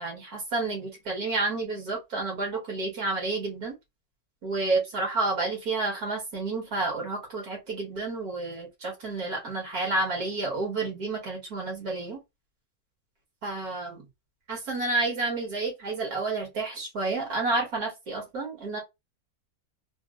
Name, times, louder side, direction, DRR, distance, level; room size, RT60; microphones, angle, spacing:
voice 1, 0.0-3.7 4.4-12.2 13.4-14.0 14.5-18.8, right 3 dB, 80° right, 2.1 m, -30 dB
4.1 x 2.0 x 2.4 m
omnidirectional pair, 1.6 m